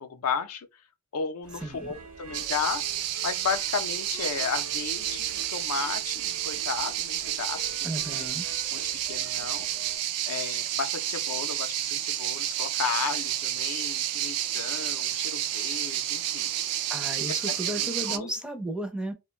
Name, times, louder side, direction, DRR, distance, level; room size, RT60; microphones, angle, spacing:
voice 1, 0.0-0.7 1.1-2.8 3.2-7.8 8.2-8.3 8.7-9.7 10.3-16.5 17.3-17.4 17.8-18.3, left 6 dB, 80° left, 0.5 m, -34 dB
sound 1, 1.4-10.0, right 4 dB, 70° right, 0.8 m, -47 dB
voice 2, 1.6-1.9 7.8-8.5 16.9-19.1, right 1 dB, 5° right, 0.4 m, -34 dB
sound 2, 2.3-18.2, right 12 dB, 85° right, 0.3 m, -30 dB
2.4 x 2.1 x 3.0 m
head